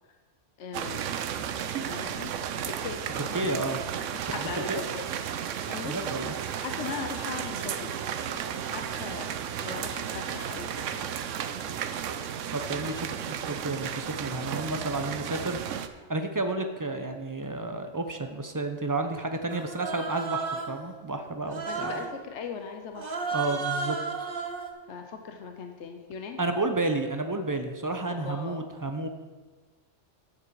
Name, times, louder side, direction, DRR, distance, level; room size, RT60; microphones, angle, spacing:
voice 1, 0.6-1.1 1.8-2.3 2.7-3.4 4.1-6.0 6.2-8.0 8.3-9.3 9.6-11.1 21.6-23.3 24.9-26.4 28.1-28.6, left 5 dB, 70° left, 5 dB, 1.1 m, -39 dB
sound 1, 0.7-15.9, right 8 dB, 85° right, 1.0 m, -34 dB
voice 2, 3.3-3.8 4.2-4.8 5.8-6.3 12.5-15.6 16.1-21.9 23.3-24.3 26.4-29.1, right 2 dB, 25° right, 6 dB, 0.5 m, -31 dB
Human voice, 19.5-20.8 21.5-22.1 22.9-24.7, right 4 dB, 50° right, 1.0 m, -33 dB
9.9 x 7.5 x 4.7 m, 1.3 s
omnidirectional pair, 1.2 m